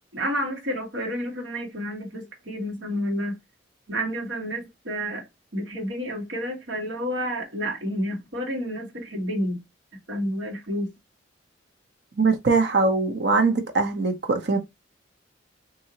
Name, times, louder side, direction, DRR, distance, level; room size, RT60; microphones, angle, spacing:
voice 1, 0.1-3.3 3.9-5.2 5.5-9.6 10.1-10.9, equal, 85° right, 1.4 m, -30 dB
voice 2, 12.2-14.6, right 3 dB, 60° right, 0.7 m, -22 dB
3.8 x 2.7 x 2.8 m
head